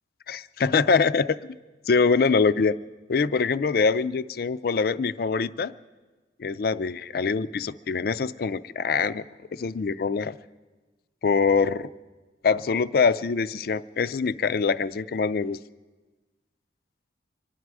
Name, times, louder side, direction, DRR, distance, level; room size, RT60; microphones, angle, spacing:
voice 1, 0.3-1.6 1.9-2.8 3.1-5.7 6.4-9.2 9.5-10.4 11.2-11.9 12.4-15.6, left 5 dB, 55° left, 15 dB, 0.4 m, -24 dB
25.5 x 11.5 x 4.8 m, 1.3 s
head